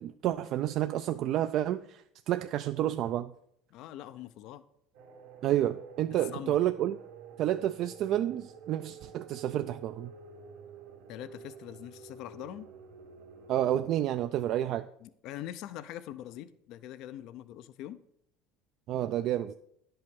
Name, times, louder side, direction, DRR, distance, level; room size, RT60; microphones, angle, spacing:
voice 1, 0.0-3.3 5.4-7.0 7.4-10.1 13.5-14.9 18.9-19.5, right 12 dB, 55° right, 0.3 m, -30 dB
voice 2, 3.7-4.6 6.3-6.6 11.1-12.7 15.0-18.0, left 12 dB, 60° left, 0.5 m, -43 dB
sound 1, 4.9-13.9, right 6 dB, 85° right, 1.8 m, -50 dB
10.5 x 5.6 x 5.3 m
supercardioid pair, 120°, 0 cm